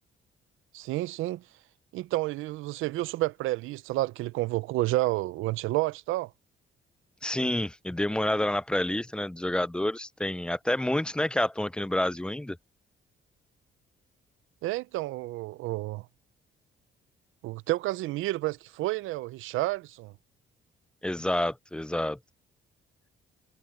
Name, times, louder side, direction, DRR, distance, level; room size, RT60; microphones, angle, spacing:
voice 1, 0.7-1.4 1.9-6.3 14.6-16.1 17.4-20.1, right 18 dB, 90° right, 0.5 m, -30 dB
voice 2, 7.2-12.6 21.0-22.2, left 1 dB, 5° left, 0.4 m, -28 dB
cardioid pair, 90°, 20 cm